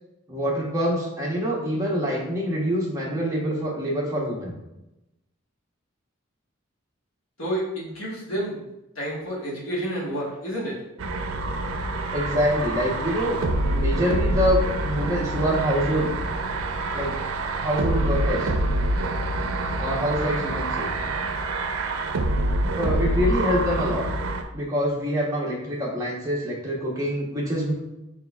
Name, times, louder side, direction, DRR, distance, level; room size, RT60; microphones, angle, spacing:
voice 1, 0.3-4.6 12.1-13.4 13.7-16.1 16.9-17.1 17.6-18.5 19.8-20.9 22.7-24.1 24.5-27.7, equal, 15° right, -4 dB, 1.0 m, -25 dB
voice 2, 7.4-8.6 8.9-10.8, right 1 dB, 80° left, -5 dB, 1.4 m, -29 dB
sound 1, 11.0-24.4, right 2 dB, 85° right, 0.5 m, -26 dB
5.1 x 3.8 x 2.4 m, 0.92 s
head